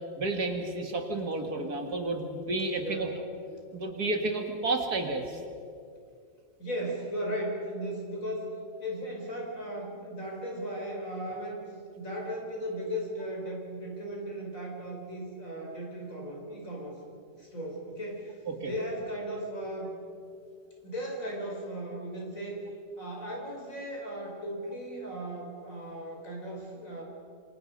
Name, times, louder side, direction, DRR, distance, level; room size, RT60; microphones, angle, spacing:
voice 1, 0.2-3.1 3.7-5.4 18.5-18.7, right 2 dB, 55° right, 4 dB, 2.3 m, -31 dB
voice 2, 2.8-3.2 6.6-8.5 8.8-11.6 12.0-17.0 17.3-20.0 20.8-22.6 23.0-27.0, equal, 45° left, -1 dB, 5.4 m, -36 dB
26.5 x 26.0 x 5.3 m, 2.4 s
omnidirectional pair, 2.0 m